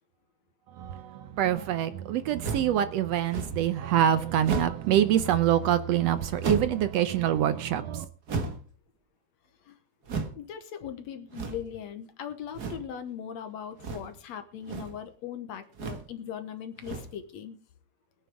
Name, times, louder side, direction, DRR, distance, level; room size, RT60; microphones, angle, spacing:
voice 1, 0.8-8.1, right 11 dB, 75° right, 1.6 m, -25 dB
sound 1, 2.4-2.8 3.3-3.7 4.4-4.9 6.4-6.8 8.3-8.7 10.0-10.4 11.3-11.8 12.5-12.9 13.8-14.2 14.5-15.0 15.7-16.1 16.8-17.2, right 4 dB, 40° right, 1.6 m, -34 dB
voice 2, 10.4-17.6, left 8 dB, 70° left, 2.1 m, -39 dB
21.5 x 9.5 x 3.5 m
omnidirectional pair, 3.5 m